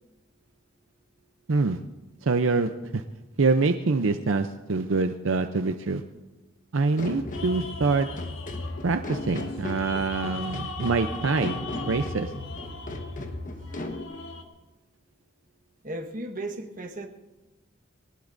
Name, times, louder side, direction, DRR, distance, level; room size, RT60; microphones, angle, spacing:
voice 1, 1.5-1.8 2.2-3.0 3.4-6.0 6.7-8.1 8.8-11.6 11.9-12.3, right 3 dB, 75° right, 8 dB, 0.6 m, -25 dB
sound 1, 7.0-14.0, left 2 dB, 40° left, 1.3 m, -36 dB
sound 2, 7.3-14.4, left 3 dB, 70° left, 1.4 m, -40 dB
voice 2, 15.8-17.1, right 1 dB, 45° right, 3 dB, 1.4 m, -35 dB
22.5 x 19.0 x 2.6 m, 1.1 s
head